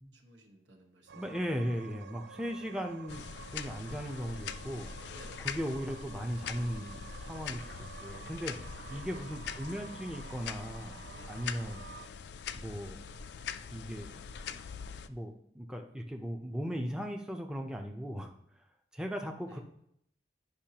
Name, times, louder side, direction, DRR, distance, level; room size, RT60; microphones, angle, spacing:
voice 1, 0.1-1.4 5.1-5.5 8.8-9.4 11.1-11.4 19.5-19.6, right 1 dB, 85° right, 1 dB, 1.3 m, -56 dB
sound 1, 1.1-12.1, right 6 dB, 65° right, 0.3 m, -51 dB
voice 2, 1.2-4.9 5.4-8.6 8.9-11.8 12.5-13.0 13.7-14.2 14.5-14.6 15.1-18.3 18.9-19.6, equal, 5° right, 3 dB, 0.6 m, -38 dB
sound 2, 3.1-15.1, left 6 dB, 70° left, 0.4 m, -43 dB
10.5 x 5.3 x 2.9 m, 0.74 s
head